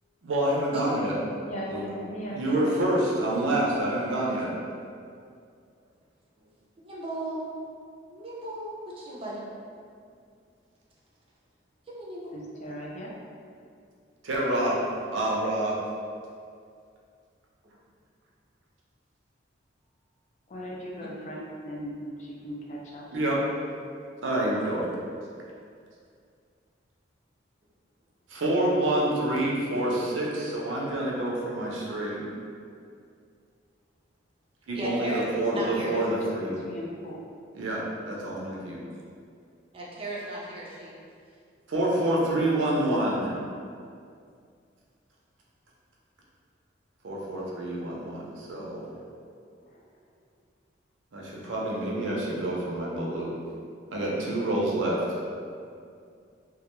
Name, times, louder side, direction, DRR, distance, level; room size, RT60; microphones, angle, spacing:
voice 1, 0.2-1.1 1.7-1.9 2.3-4.5 14.2-14.8 15.1-15.8 23.1-23.4 24.2-24.9 28.3-32.2 34.7-36.6 37.5-38.8 41.7-43.3 47.0-48.9 51.1-53.3 53.9-55.2, right 1 dB, 75° right, -4 dB, 0.5 m, -27 dB
voice 2, 1.4-3.0 12.3-13.2 20.5-23.1 35.3-37.2 49.6-50.0, equal, 35° left, -4 dB, 0.4 m, -38 dB
voice 3, 6.8-7.4 8.1-9.4 11.9-12.3 21.0-21.1 34.7-36.0 39.7-40.9, right 1 dB, 30° right, -5 dB, 0.4 m, -36 dB
2.3 x 2.1 x 2.9 m, 2.3 s
head